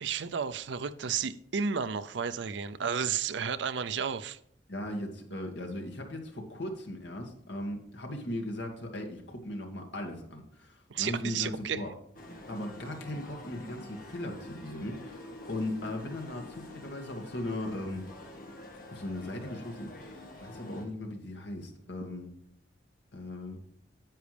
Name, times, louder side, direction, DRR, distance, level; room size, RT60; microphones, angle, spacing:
voice 1, 0.0-4.4 10.9-11.8, right 6 dB, 75° right, 0.5 m, -32 dB
voice 2, 4.7-11.9 12.5-18.1 18.7-22.3 23.1-23.6, left 1 dB, 70° left, 2.0 m, -38 dB
sound 1, 12.1-20.9, left 1 dB, 50° left, 1.6 m, -47 dB
10.0 x 8.2 x 3.4 m
head